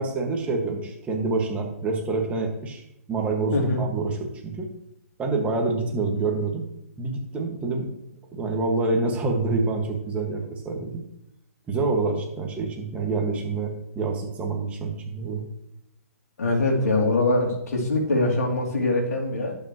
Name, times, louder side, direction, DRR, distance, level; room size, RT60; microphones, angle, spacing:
voice 1, 0.0-2.8 3.1-4.7 5.2-6.6 7.0-7.9 8.3-11.0 11.7-15.4, right 3 dB, 15° right, 1 dB, 1.9 m, -27 dB
voice 2, 3.5-3.8 16.4-19.6, left 2 dB, 80° left, 0 dB, 3.1 m, -23 dB
11.5 x 8.2 x 3.1 m, 0.82 s
hypercardioid pair, 140°, 9 cm